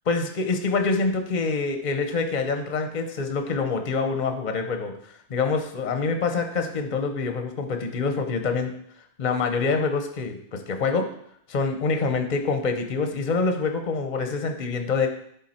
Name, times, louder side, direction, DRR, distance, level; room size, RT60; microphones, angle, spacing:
voice 1, 0.1-8.7 9.2-11.1 11.5-15.1, left 4 dB, 45° left, 6 dB, 0.9 m, -26 dB
10.5 x 3.8 x 4.3 m, 0.69 s
omnidirectional pair, 1.2 m